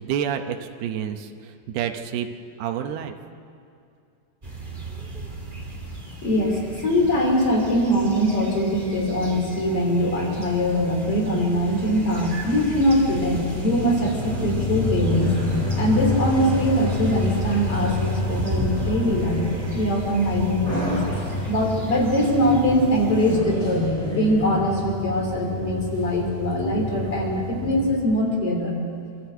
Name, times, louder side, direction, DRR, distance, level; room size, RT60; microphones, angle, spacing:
voice 1, 0.0-2.3 2.6-3.1, right 9 dB, 85° right, 5 dB, 3.0 m, -29 dB
sound 1, 4.4-23.4, equal, 15° right, 2.5 m, -33 dB
voice 2, 6.2-15.3 15.8-21.0 21.5-28.8, equal, 40° left, 1 dB, 3.6 m, -22 dB
sound 2, 14.2-28.0, left 2 dB, 10° left, 5.6 m, -29 dB
27.0 x 13.0 x 8.2 m, 2.4 s
omnidirectional pair, 4.5 m